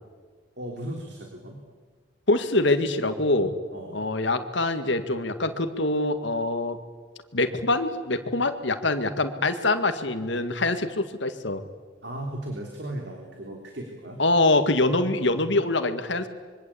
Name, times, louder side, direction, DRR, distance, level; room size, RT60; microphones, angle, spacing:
voice 1, 0.6-1.6 3.7-4.1 12.0-14.2, right 1 dB, 60° right, 1 dB, 3.5 m, -36 dB
voice 2, 2.3-3.5 3.9-6.8 7.3-11.6 14.2-16.3, left 2 dB, 65° left, 9 dB, 2.0 m, -24 dB
25.5 x 24.0 x 8.7 m, 1.5 s
head